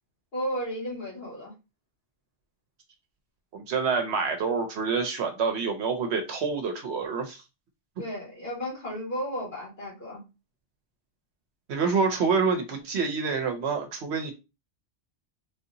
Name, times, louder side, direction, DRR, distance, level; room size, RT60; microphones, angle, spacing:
voice 1, 0.3-1.5 8.0-10.2, equal, 55° left, 2.0 m, -33 dB
voice 2, 3.5-7.4 11.7-14.3, right 5 dB, 70° right, 0.9 m, -27 dB
3.8 x 2.7 x 2.6 m
omnidirectional pair, 1.2 m